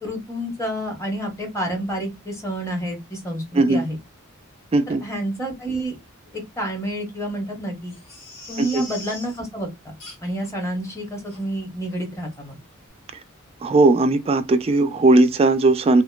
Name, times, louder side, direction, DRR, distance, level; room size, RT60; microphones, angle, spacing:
voice 1, 0.0-4.0 4.9-6.0 6.3-7.9 8.5-9.9 10.2-12.6, right 1 dB, 15° left, 1.0 m, -29 dB
voice 2, 4.7-5.0 8.6-8.9 13.6-16.0, right 2 dB, 30° right, 0.3 m, -17 dB
Crying sobbing, 7.9-9.4 10.0-10.5 10.8-10.9 11.3-11.4 11.9-12.1 12.3-12.4, left 2 dB, 70° left, 1.4 m, -40 dB
2.8 x 2.2 x 2.2 m
head